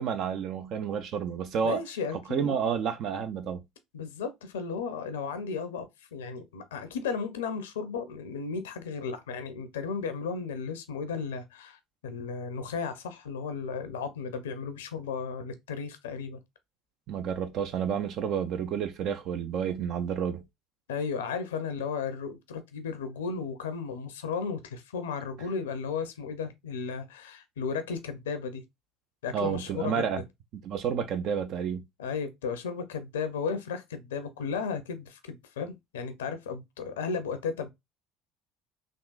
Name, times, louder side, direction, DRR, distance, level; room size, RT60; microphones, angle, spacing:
voice 1, 0.0-1.8 2.3-3.6 17.1-20.4 29.3-30.2 30.6-31.8, right 7 dB, 55° right, 0.4 m, -30 dB
voice 2, 1.6-2.5 3.9-5.8 6.1-16.4 20.9-28.6 29.2-30.1 32.0-37.7, left 5 dB, 75° left, 0.5 m, -34 dB
3.6 x 2.4 x 2.3 m
figure-of-eight pair, 60°, 0 cm